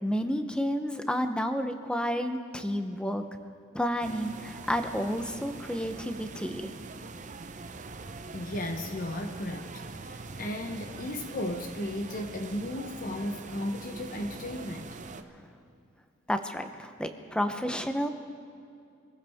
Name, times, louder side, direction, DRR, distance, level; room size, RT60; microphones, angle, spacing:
voice 1, 0.0-3.3 3.7-6.7 16.3-18.1, equal, 5° left, 7 dB, 0.8 m, -30 dB
sound 1, 4.0-15.2, right 3 dB, 35° right, 0.7 m, -43 dB
voice 2, 8.3-15.0, left 1 dB, 40° left, 5 dB, 0.9 m, -35 dB
25.0 x 15.0 x 3.5 m, 2.5 s
head